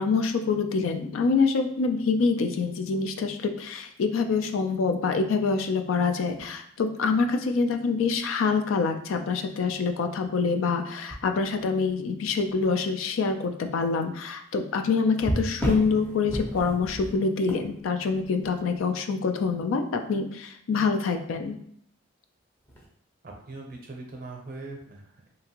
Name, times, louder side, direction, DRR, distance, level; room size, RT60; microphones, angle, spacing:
voice 1, 0.0-21.6, left 4 dB, 90° left, 6 dB, 0.3 m, -26 dB
sound 1, 6.3-6.5 8.0-8.2 8.8-8.9 11.1-11.9 12.5-12.7 15.1-18.8 22.6-22.9, equal, 10° left, 0.5 m, -33 dB
voice 2, 23.2-25.3, right 2 dB, 45° right, 1 dB, 0.6 m, -41 dB
2.8 x 2.5 x 2.8 m, 0.66 s
head